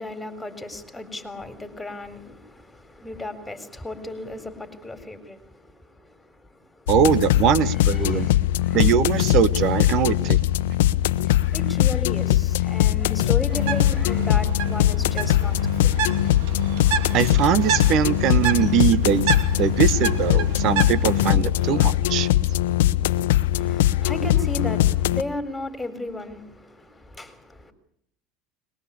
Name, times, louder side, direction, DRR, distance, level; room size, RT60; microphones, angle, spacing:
voice 1, 0.0-5.5 5.8-6.1 7.8-8.4 8.6-8.8 11.4-16.0 23.5-27.7, left 2 dB, 10° left, 10 dB, 4.1 m, -35 dB
sound 1, 6.9-25.2, left 14 dB, 85° left, 0.9 m, -21 dB
voice 2, 6.9-8.3 8.7-10.4 17.1-22.3, right 9 dB, 55° right, 17 dB, 1.3 m, -22 dB
Bird, 13.5-21.3, right 5 dB, 70° right, 2.7 m, -29 dB
22.5 x 21.5 x 8.5 m, 0.68 s
supercardioid pair, 100°, 0 cm